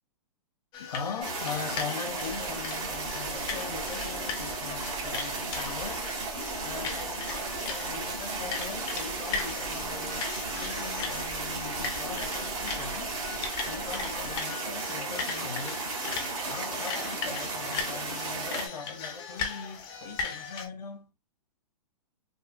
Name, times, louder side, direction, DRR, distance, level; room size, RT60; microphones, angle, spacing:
sound 1, 0.7-20.7, left 5 dB, 20° left, 0.6 m, -38 dB
voice 1, 0.8-6.3 6.6-10.3 10.6-13.2 13.7-15.9 16.5-21.1, left 5 dB, 90° left, 1.1 m, -40 dB
sound 2, 1.2-18.7, right 3 dB, 55° right, 1.4 m, -35 dB
sound 3, 2.1-14.4, right 1 dB, 25° right, 0.8 m, -48 dB
3.5 x 2.3 x 2.2 m
hypercardioid pair, 145°, 20 cm